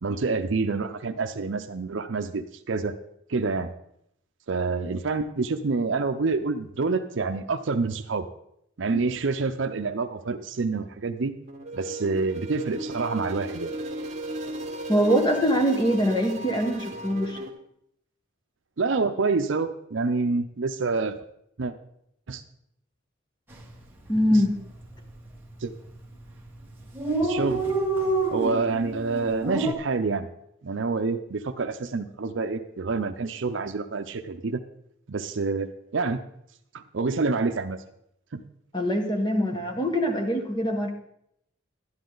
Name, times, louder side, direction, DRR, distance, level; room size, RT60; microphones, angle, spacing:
voice 1, 0.0-3.0 3.3-3.7 4.5-8.3 8.8-11.3 11.7-13.7 18.8-21.2 21.6-21.7 22.3-22.4 25.6-25.7 27.2-27.6 28.3-30.3 30.6-34.6 35.1-36.2 36.9-37.8 38.3-38.4, right 4 dB, 65° right, 7 dB, 0.6 m, -27 dB
sound 1, 11.5-17.5, right 1 dB, 35° right, 1.8 m, -36 dB
voice 2, 14.9-17.4 24.1-24.5 38.7-40.9, equal, 20° left, 4 dB, 1.2 m, -23 dB
Dog, 23.5-23.8 24.1-24.2 24.4-25.1 25.7-26.0 26.3-26.4 26.5-26.6 26.8-29.7, right 2 dB, 10° right, 1.7 m, -27 dB
11.5 x 11.0 x 3.9 m, 0.75 s
head